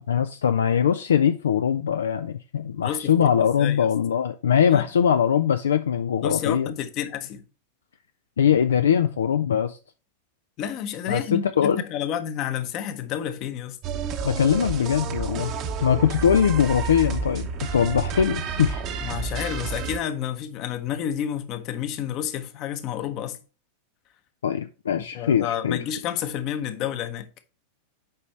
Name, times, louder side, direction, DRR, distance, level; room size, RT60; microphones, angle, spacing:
voice 1, 0.1-6.7 8.4-9.8 11.1-11.8 14.2-15.5 15.8-18.8 24.4-25.8, left 8 dB, 65° left, 0.4 m, -22 dB
voice 2, 2.8-3.9 4.7-4.8 6.2-7.4 10.6-13.8 19.0-23.4 25.1-27.3, left 9 dB, 40° left, 0.9 m, -30 dB
sound 1, 13.8-20.0, right 5 dB, 35° right, 0.9 m, -30 dB
8.1 x 5.1 x 3.2 m
figure-of-eight pair, 90°, 0 cm